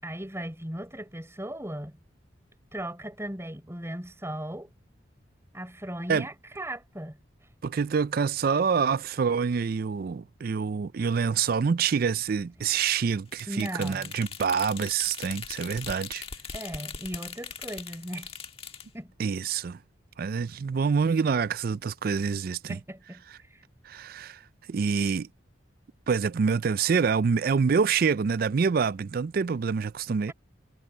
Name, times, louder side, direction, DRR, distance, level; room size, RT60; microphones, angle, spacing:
voice 1, 0.0-2.0 2.7-4.7 5.5-7.2 13.5-14.1 16.5-18.3 18.9-19.1 22.7-23.6 30.3-30.4, right 1 dB, 15° right, 4.6 m, -37 dB
voice 2, 7.6-16.2 19.2-19.8 20.2-22.8 23.8-24.4 24.7-25.3 26.1-30.3, right 6 dB, 50° right, 0.4 m, -26 dB
sound 1, 13.3-18.9, left 6 dB, 30° left, 1.6 m, -40 dB
head